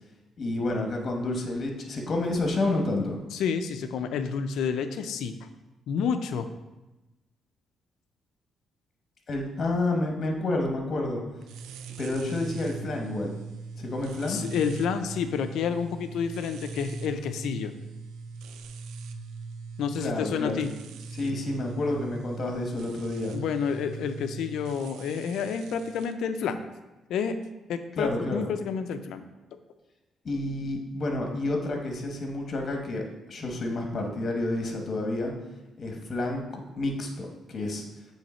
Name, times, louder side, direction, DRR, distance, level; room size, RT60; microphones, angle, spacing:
voice 1, 0.4-3.2 9.3-11.2 12.0-13.3 13.8-14.4 20.0-20.7 21.1-23.3 28.0-28.5 30.2-35.3 35.8-37.8, left 2 dB, 45° left, 2 dB, 1.2 m, -29 dB
voice 2, 3.3-5.5 5.9-6.5 14.3-17.7 19.8-20.7 23.3-26.6 27.1-27.4 27.7-29.2, left 6 dB, 80° left, 9 dB, 0.5 m, -29 dB
sound 1, 11.4-26.1, right 4 dB, 85° right, 0.3 m, -41 dB
7.4 x 3.2 x 4.3 m, 1.0 s
cardioid pair, 90°, 0 cm